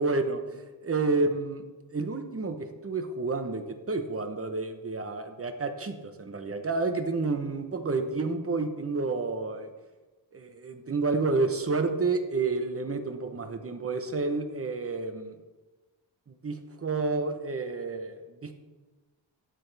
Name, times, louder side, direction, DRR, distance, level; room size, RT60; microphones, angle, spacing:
voice 1, 0.0-1.6 1.9-9.7 10.3-15.4 16.4-18.5, right 3 dB, 30° right, 6 dB, 1.0 m, -30 dB
12.0 x 9.4 x 3.5 m, 1.2 s
wide cardioid pair, 130°, 45 cm